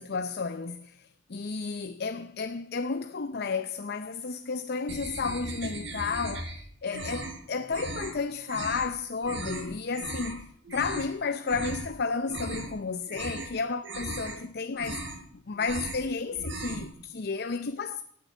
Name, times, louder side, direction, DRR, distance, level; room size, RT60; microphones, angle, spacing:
voice 1, 0.0-15.2 15.5-18.0, left 4 dB, 55° left, 0.6 m, -32 dB
sound 1, 4.9-6.6 6.9-7.4 7.7-8.1 8.5-8.9 9.2-9.6 9.9-10.3 10.6-11.1 11.5-11.8 12.2-12.8 13.1-13.5 13.8-14.3 14.7-15.2 15.5-16.0 16.3-16.9, right 2 dB, 70° right, 4.4 m, -37 dB
18.0 x 7.6 x 9.3 m
head